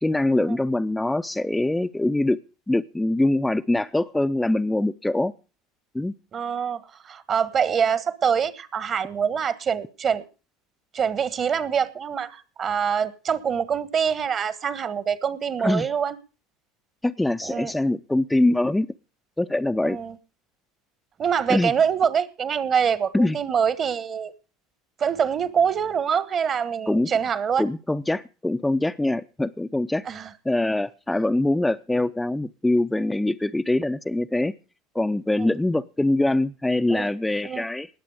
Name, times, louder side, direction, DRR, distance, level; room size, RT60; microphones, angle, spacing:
voice 1, 0.0-2.4 2.7-5.3 5.9-6.1 15.6-15.9 17.0-18.9 19.4-20.0 21.5-21.7 23.1-23.4 26.9-27.1 27.6-30.0 30.4-34.5 34.9-37.9, left 2 dB, 10° left, 0.6 m, -23 dB
voice 2, 6.3-10.2 10.9-16.2 17.4-17.7 19.8-20.1 21.2-24.3 25.0-27.6 30.1-30.3 35.4-35.5 36.9-37.1 37.4-37.6, right 7 dB, 40° right, 1.3 m, -25 dB
19.5 x 7.5 x 4.9 m
figure-of-eight pair, 70°, 0 cm